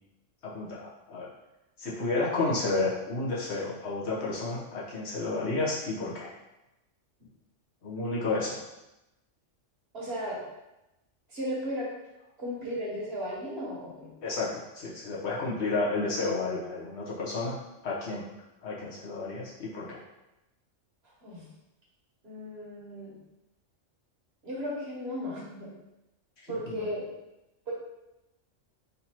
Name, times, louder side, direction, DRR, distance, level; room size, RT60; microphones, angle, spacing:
voice 1, 0.4-1.3 1.8-6.3 7.8-8.6 14.2-14.5 14.7-17.6 17.8-18.3 18.6-20.0 26.7-26.8, left 3 dB, 60° left, -5 dB, 1.2 m, -31 dB
voice 2, 9.9-10.4 11.3-11.9 12.4-14.1 21.2-21.5 22.2-23.1 24.4-25.7 26.5-27.1 27.7-27.8, equal, 55° right, -5 dB, 1.5 m, -35 dB
4.0 x 2.8 x 4.3 m, 0.95 s
omnidirectional pair, 1.3 m